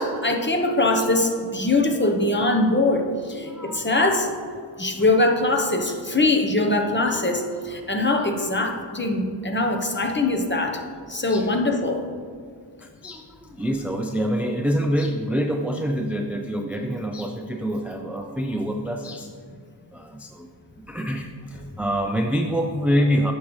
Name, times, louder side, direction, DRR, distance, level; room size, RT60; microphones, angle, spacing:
voice 1, 0.0-3.1 3.4-4.3 4.8-10.8 11.1-12.0, left 2 dB, 25° left, 3 dB, 0.9 m, -22 dB
voice 2, 3.3-4.0 5.8-6.0 7.2-7.5 11.3-11.5 12.8-19.3 19.9-20.5 20.9-23.3, equal, 5° right, 3 dB, 0.4 m, -26 dB
9.1 x 6.3 x 3.1 m, 2.1 s
wide cardioid pair, 65°, 45 cm